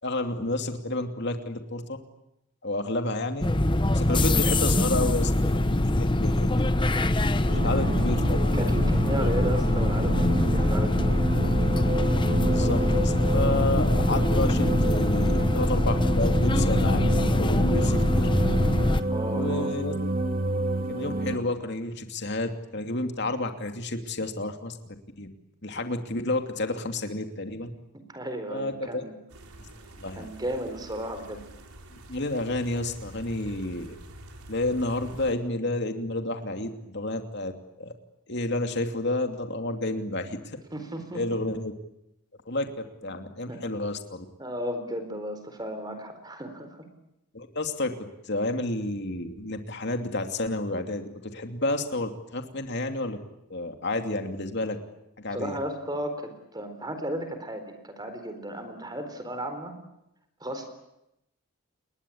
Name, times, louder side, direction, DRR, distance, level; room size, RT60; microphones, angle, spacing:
voice 1, 0.0-2.0 2.6-3.5 3.9-7.0 7.4-8.4 12.5-18.3 19.3-19.9 20.9-25.3 25.6-27.7 28.5-29.0 30.0-30.3 31.9-34.0 34.5-37.5 37.8-37.9 38.3-40.6 41.1-41.7 42.5-44.2 47.3-53.2 53.5-54.8 55.2-55.6, left 2 dB, 50° left, 6 dB, 2.8 m, -30 dB
sound 1, 3.4-19.0, left 1 dB, 20° left, 0.9 m, -23 dB
sound 2, 7.5-21.4, right 2 dB, 40° right, 3.5 m, -30 dB
voice 2, 8.5-11.3 19.1-19.7 28.1-29.1 30.2-31.4 40.7-41.4 43.0-43.1 43.5-43.6 44.4-46.8 55.3-59.7 60.4-60.7, right 1 dB, 20° right, 8 dB, 4.1 m, -34 dB
sound 3, 29.3-35.4, right 1 dB, 85° right, 4.0 m, -47 dB
30.0 x 21.5 x 8.7 m, 0.86 s
head